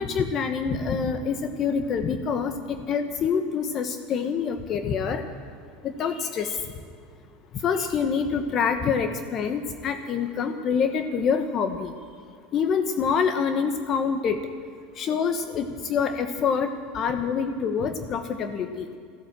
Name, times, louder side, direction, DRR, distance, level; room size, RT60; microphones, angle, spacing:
voice 1, 0.0-5.2 5.8-6.6 7.6-11.9 12.5-14.4 15.0-18.9, left 6 dB, 45° left, 7 dB, 1.1 m, -26 dB
14.0 x 12.5 x 7.5 m, 2.1 s
hypercardioid pair, 95°, 0 cm